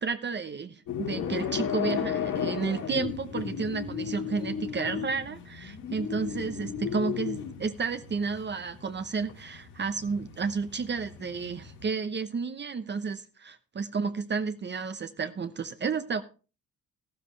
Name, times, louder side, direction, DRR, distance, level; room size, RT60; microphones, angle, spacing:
voice 1, 0.0-16.2, right 5 dB, 35° right, 0.9 m, -32 dB
sound 1, 0.9-11.8, left 8 dB, 85° left, 3.2 m, -35 dB
13.5 x 12.5 x 3.3 m
cardioid pair, 90°, 30 cm